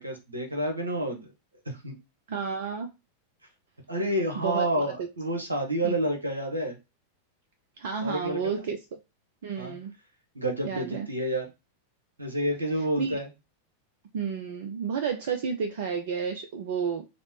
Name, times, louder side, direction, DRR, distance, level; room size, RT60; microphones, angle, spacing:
voice 1, 0.0-1.3 1.7-1.9 3.9-6.8 8.0-8.7 9.6-9.8 10.3-11.4 12.2-13.3, right 1 dB, 80° right, 0.9 m, -29 dB
voice 2, 2.3-2.9 4.4-4.7 5.0-5.1 5.8-5.9 7.8-8.8 9.4-9.9 10.6-11.1 13.0-13.2 14.1-17.1, right 6 dB, 55° right, 0.4 m, -31 dB
4.0 x 2.0 x 3.1 m
figure-of-eight pair, 90°, 0 cm